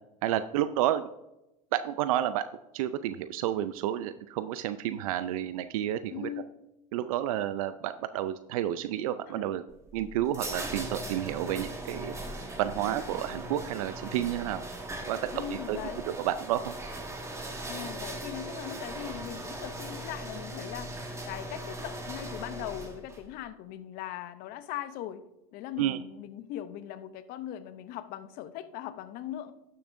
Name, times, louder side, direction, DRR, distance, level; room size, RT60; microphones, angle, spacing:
voice 1, 0.2-1.0 1.7-2.4 2.7-6.3 6.9-9.6 9.9-12.1 12.6-14.6 15.1-15.2 15.5-15.8 16.2-16.7 25.8-26.0, right 12 dB, 80° right, 12 dB, 0.4 m, -30 dB
voice 2, 6.1-6.4 9.3-9.4 15.3-16.0 17.7-20.9 21.3-25.2 25.5-29.5, left 12 dB, 55° left, 12 dB, 0.7 m, -40 dB
sound 1, 9.7-23.2, right 1 dB, 15° right, 1.7 m, -39 dB
12.5 x 6.8 x 2.6 m, 0.92 s
hypercardioid pair, 95°, 18 cm